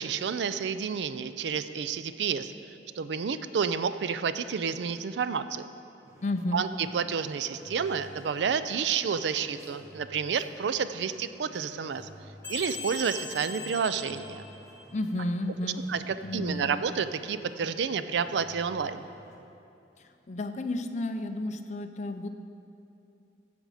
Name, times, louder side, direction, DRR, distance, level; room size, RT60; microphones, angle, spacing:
voice 1, 0.0-2.5 3.0-5.7 6.5-12.1 12.5-14.4 15.9-19.0, right 6 dB, 75° right, 12 dB, 0.4 m, -30 dB
sound 1, 6.0-19.3, equal, 15° right, 1.2 m, -52 dB
voice 2, 6.2-6.6 14.9-15.9 16.2-16.7 20.0-22.3, left 1 dB, 40° left, 7 dB, 0.5 m, -32 dB
sound 2, 12.4-15.0, left 4 dB, 10° left, 1.4 m, -40 dB
14.0 x 5.2 x 4.9 m, 2.7 s
head